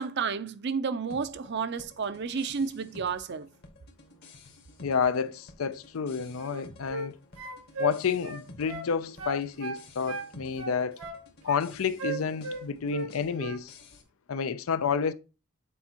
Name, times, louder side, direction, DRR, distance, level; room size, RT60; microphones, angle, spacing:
voice 1, 0.0-3.5, right 5 dB, 50° right, 0.5 m, -31 dB
sound 1, 1.1-14.0, left 2 dB, 50° left, 1.2 m, -53 dB
voice 2, 4.8-7.2 7.8-11.0 11.4-13.8 14.3-15.1, left 6 dB, 75° left, 0.5 m, -30 dB
sound 2, 6.4-7.1 7.4-8.9 9.2-10.3 10.6-11.6 12.0-13.1 13.4-13.6, right 3 dB, 90° right, 1.3 m, -36 dB
8.2 x 4.4 x 2.9 m
head